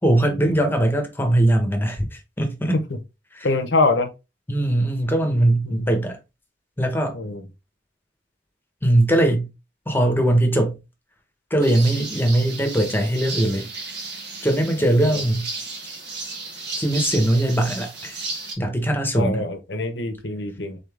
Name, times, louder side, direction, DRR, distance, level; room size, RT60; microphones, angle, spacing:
voice 1, 0.0-2.8 3.4-3.5 4.5-6.2 6.8-7.2 8.8-9.5 9.9-10.8 11.5-13.7 14.4-15.5 16.8-18.2 18.6-19.4, right 1 dB, 10° left, 1.0 m, -20 dB
voice 2, 3.4-4.1 5.6-6.0 7.1-7.4 15.0-15.2 19.1-20.8, left 3 dB, 70° left, 0.9 m, -24 dB
sound 1, 11.6-18.5, right 3 dB, 65° right, 1.5 m, -33 dB
3.9 x 3.9 x 3.4 m
head